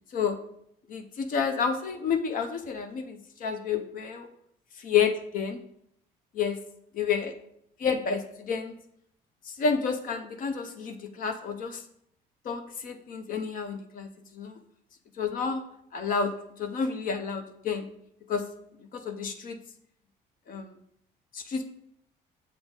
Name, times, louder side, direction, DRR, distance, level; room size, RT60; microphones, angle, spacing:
voice 1, 0.9-4.3 4.8-5.6 6.3-6.6 6.9-7.3 7.8-8.7 9.5-11.8 12.5-14.6 15.2-15.6 15.9-16.3 16.6-17.9 18.3-18.4 18.9-19.6 20.5-20.7 21.3-21.7, left 6 dB, 55° left, 7 dB, 0.6 m, -30 dB
7.1 x 3.9 x 3.6 m, 0.72 s
cardioid pair, 110°, 17 cm